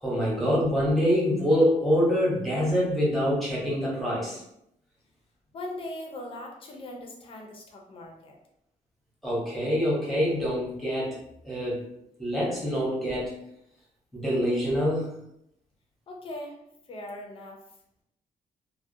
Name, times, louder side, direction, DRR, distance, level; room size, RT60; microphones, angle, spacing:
voice 1, 0.0-4.4 9.2-11.9 12.2-13.3 14.1-15.2, equal, ahead, -7 dB, 0.8 m, -25 dB
voice 2, 5.5-8.4 16.1-16.6 16.9-17.6, left 1 dB, 40° left, 1 dB, 0.5 m, -40 dB
2.4 x 2.1 x 2.6 m, 0.77 s
wide cardioid pair, 160°, 14 cm